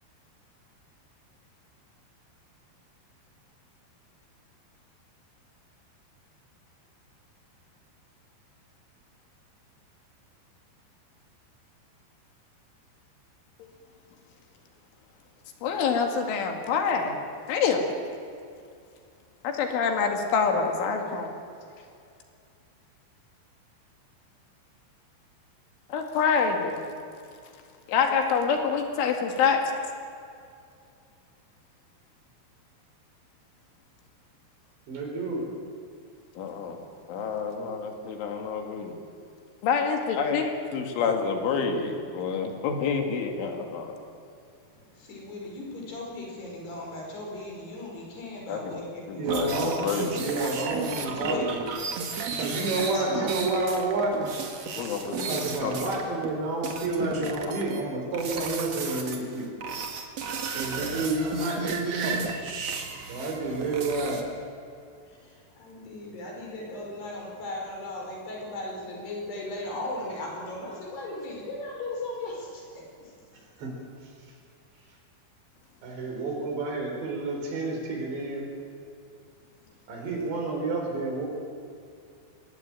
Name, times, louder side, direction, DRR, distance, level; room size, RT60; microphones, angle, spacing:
voice 1, 15.6-17.2 17.5-17.8 19.4-21.3 25.9-26.8 27.9-29.6 36.4-36.8 37.1-39.0 39.6-43.9 48.5-48.6 49.1-50.2 54.8-55.9 57.2-57.3, left 5 dB, 80° left, 4 dB, 4.6 m, -27 dB
voice 2, 34.9-35.4 49.2-49.8 50.2-51.6 52.4-54.3 55.2-59.5 60.5-62.5 63.1-64.2 73.6-73.7 74.0-74.1 75.8-78.5 79.9-81.3, right 2 dB, 65° right, 1 dB, 6.6 m, -30 dB
voice 3, 44.7-49.3 49.8-51.5 52.7-53.3 65.1-73.4, left 2 dB, 60° left, -1 dB, 6.9 m, -38 dB
sound 1, 49.3-56.3 56.6-57.8 58.1-59.2 59.6-64.2, right 5 dB, 45° right, 2.3 m, -34 dB
24.5 x 19.5 x 9.0 m, 2.4 s
omnidirectional pair, 5.5 m